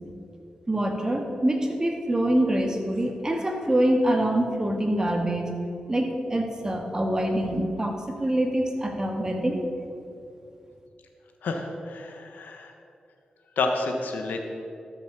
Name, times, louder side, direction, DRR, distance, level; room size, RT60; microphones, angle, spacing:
voice 1, 0.7-5.5 5.9-9.7, right 1 dB, 25° right, 3 dB, 1.8 m, -25 dB
voice 2, 11.4-12.7 13.6-14.4, left 3 dB, 85° left, 4 dB, 1.2 m, -29 dB
13.5 x 7.0 x 6.2 m, 2.6 s
cardioid pair, 65°, 3 cm